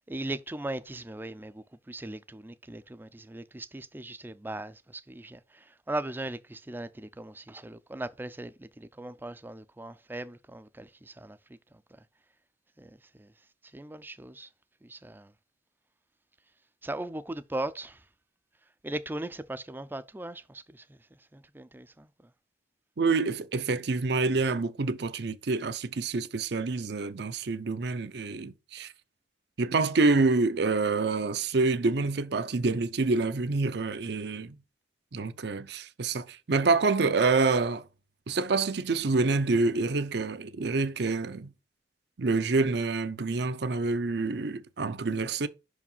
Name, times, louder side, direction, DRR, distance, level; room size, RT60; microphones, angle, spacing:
voice 1, 0.1-11.4 12.8-13.3 13.7-14.5 14.8-15.3 16.8-18.0 18.8-20.8 21.3-22.1, right 1 dB, 10° right, 0.4 m, -39 dB
voice 2, 23.0-28.9 29.6-34.6 35.1-37.8 38.3-41.5 42.2-45.5, right 3 dB, 65° right, 0.7 m, -27 dB
5.8 x 4.9 x 5.4 m
head